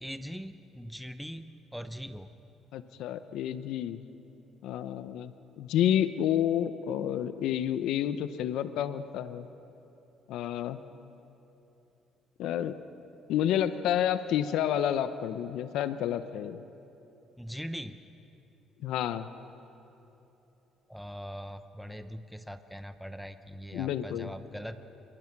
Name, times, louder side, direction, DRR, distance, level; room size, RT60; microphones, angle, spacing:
voice 1, 0.0-2.3 17.4-18.0 20.9-24.8, equal, ahead, 10 dB, 0.7 m, -41 dB
voice 2, 2.7-4.0 4.6-5.3 5.6-9.5 10.3-10.8 12.4-12.7 13.3-16.6 18.8-19.3 23.7-24.3, left 10 dB, 80° left, 12 dB, 0.7 m, -29 dB
26.5 x 21.5 x 6.0 m, 3.0 s
cardioid pair, 120°, 0 cm